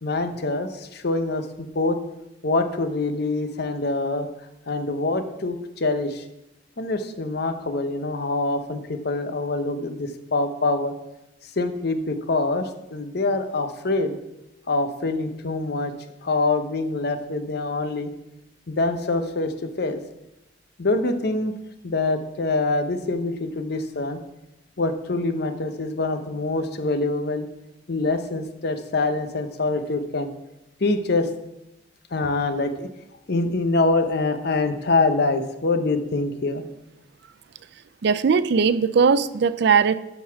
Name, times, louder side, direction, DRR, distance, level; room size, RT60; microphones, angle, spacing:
voice 1, 0.0-2.0 2.4-4.3 4.7-6.2 6.8-10.9 11.4-14.2 14.7-15.9 16.2-18.1 18.7-20.0 20.8-21.5 21.8-24.2 24.8-27.5 27.9-30.3 30.8-31.3 32.1-32.9 33.3-36.6, left 2 dB, 60° left, 8 dB, 0.8 m, -25 dB
voice 2, 38.0-39.9, right 5 dB, 65° right, 15 dB, 0.4 m, -19 dB
12.0 x 4.0 x 5.7 m, 0.91 s
head